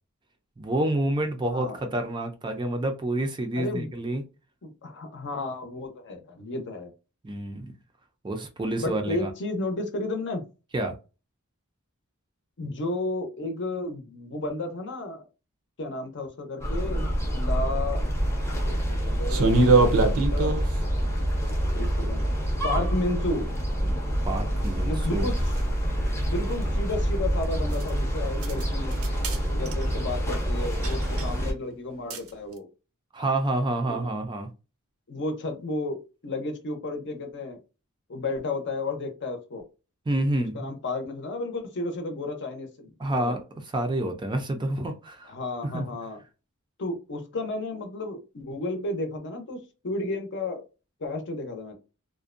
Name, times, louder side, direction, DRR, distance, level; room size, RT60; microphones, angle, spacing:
voice 1, 0.6-4.2 7.2-7.7 8.2-9.3 10.7-10.9 24.3-25.3 33.1-34.5 40.1-40.7 43.0-43.4 43.7-45.3 45.6-45.9, right 1 dB, 20° right, 0.4 m, -28 dB
voice 2, 1.5-1.8 3.5-3.9 4.6-6.9 8.8-10.5 12.6-15.3 15.8-18.0 18.6-20.6 21.7-22.2 22.6-23.5 24.8-25.3 26.2-29.0 29.5-32.7 33.9-34.1 35.1-37.6 38.1-39.6 40.5-43.4 45.2-46.2 46.8-50.6 51.0-51.8, left 2 dB, 55° left, 0.6 m, -32 dB
sound 1, 16.6-31.5, equal, 10° left, 0.7 m, -27 dB
sound 2, 19.3-20.8 24.6-24.7 25.6-25.7 27.7-27.9 28.4-28.6 28.9-29.4 29.7-29.9 30.8-31.3 32.1-32.3, right 3 dB, 70° right, 0.6 m, -22 dB
2.5 x 2.1 x 2.4 m
head